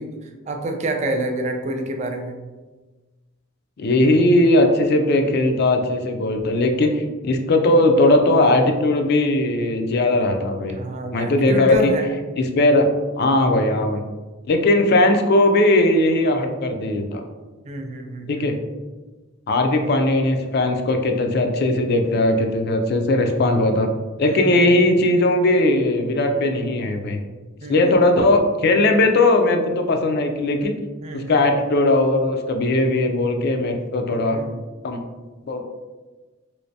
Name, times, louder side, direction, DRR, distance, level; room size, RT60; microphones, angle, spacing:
voice 1, 0.0-2.4 10.8-12.1 17.7-18.5 24.3-24.4 27.6-27.9 31.0-31.4 34.3-34.4, right 1 dB, 35° right, 5 dB, 0.4 m, -27 dB
voice 2, 3.8-10.8 11.1-11.9 12.4-12.9 13.2-14.0 14.4-17.2 18.3-18.6 19.5-23.9 24.2-27.2 27.7-30.7 31.1-34.4 34.8-35.0 35.5-35.6, left 2 dB, 50° left, 5 dB, 0.4 m, -18 dB
3.2 x 3.0 x 2.7 m, 1.2 s
head